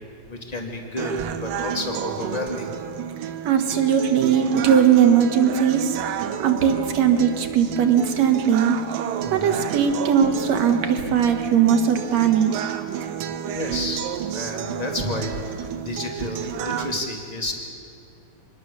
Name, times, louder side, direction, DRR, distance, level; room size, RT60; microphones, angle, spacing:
voice 1, 0.3-2.7 9.2-9.7 13.5-14.1 14.3-17.5, left 2 dB, 15° left, 1 dB, 2.1 m, -31 dB
sound 1, 1.0-17.0, right 9 dB, 90° right, 2.7 m, -30 dB
voice 2, 3.2-5.9 6.4-8.8 9.3-12.5, right 8 dB, 60° right, 5 dB, 2.5 m, -19 dB
26.0 x 20.5 x 6.9 m, 2.5 s
omnidirectional pair, 3.8 m